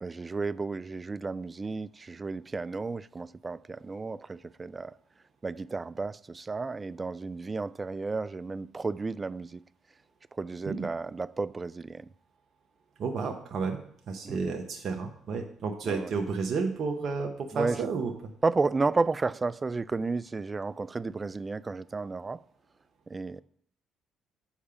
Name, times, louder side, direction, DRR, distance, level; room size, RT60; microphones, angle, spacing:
voice 1, 0.0-4.9 5.4-9.6 10.4-12.1 14.2-14.5 15.8-16.1 17.5-17.9 18.4-22.4 23.1-23.4, right 3 dB, 30° right, 0.3 m, -32 dB
voice 2, 13.0-13.8 14.1-18.1, right 4 dB, 55° right, 0.9 m, -31 dB
7.2 x 4.8 x 6.9 m
hypercardioid pair, 60°, 0 cm